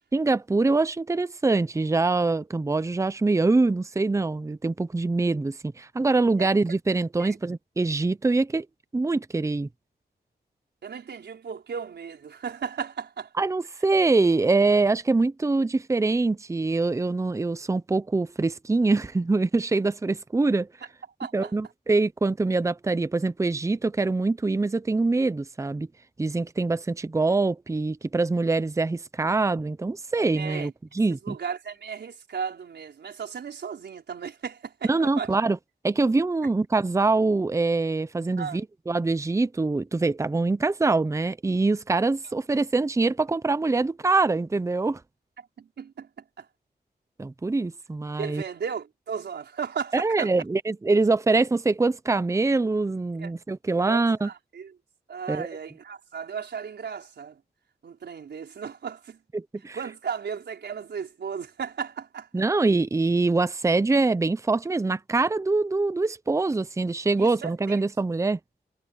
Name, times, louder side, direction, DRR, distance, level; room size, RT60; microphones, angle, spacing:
voice 1, 0.1-8.7 8.9-9.7 13.4-20.7 21.3-25.9 26.2-30.7 31.0-31.4 34.9-35.6 35.8-45.0 47.2-48.4 49.9-54.3 55.3-55.5 59.3-59.8 62.3-68.4, right 3 dB, 15° right, 0.6 m, -24 dB
voice 2, 10.8-13.3 21.2-21.5 30.4-30.7 31.2-35.3 38.4-38.6 45.6-46.5 48.2-50.3 53.2-53.3 53.9-54.7 55.1-57.4 57.8-59.2 59.7-62.3 67.2-67.8, right 6 dB, 85° right, 4.8 m, -35 dB
wide cardioid pair, 105°, 17 cm